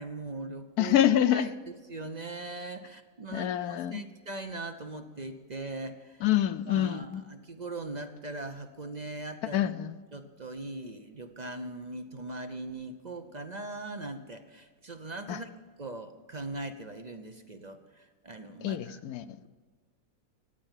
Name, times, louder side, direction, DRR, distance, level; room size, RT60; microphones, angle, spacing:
voice 1, 0.0-0.9 1.3-1.5 1.9-6.2 6.7-9.6 10.1-15.5 15.8-19.0, right 2 dB, 45° right, 8 dB, 0.6 m, -40 dB
voice 2, 0.8-1.5 3.3-4.0 6.2-7.2 9.5-10.0 15.3-15.4 18.6-19.4, left 11 dB, 70° left, 12 dB, 1.1 m, -26 dB
15.0 x 9.1 x 7.3 m, 1.5 s
omnidirectional pair, 1.7 m